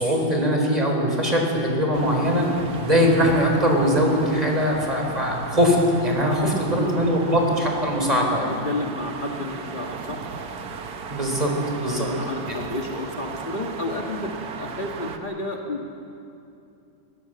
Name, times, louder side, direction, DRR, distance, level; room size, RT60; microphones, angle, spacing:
voice 1, 0.0-2.5 2.8-8.5 11.1-12.1, equal, 10° right, 1 dB, 3.8 m, -21 dB
sound 1, 1.9-15.2, right 4 dB, 80° right, 0.8 m, -36 dB
voice 2, 6.5-6.9 7.2-7.3 8.5-10.2 11.8-15.9, left 1 dB, 70° left, 0 dB, 0.4 m, -31 dB
21.5 x 19.5 x 7.8 m, 2.7 s
omnidirectional pair, 3.5 m